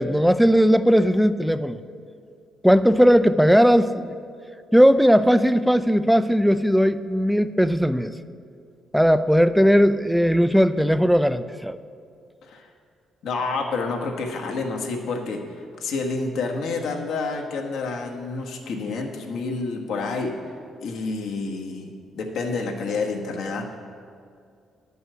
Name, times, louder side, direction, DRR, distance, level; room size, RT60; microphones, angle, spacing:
voice 1, 0.0-1.8 2.6-4.2 4.7-8.1 8.9-11.8, equal, ahead, 12 dB, 0.4 m, -18 dB
voice 2, 13.2-15.4 15.8-20.3 20.8-23.8, left 3 dB, 75° left, 1 dB, 1.3 m, -29 dB
11.0 x 5.6 x 7.7 m, 2.4 s
cardioid pair, 90°, 0 cm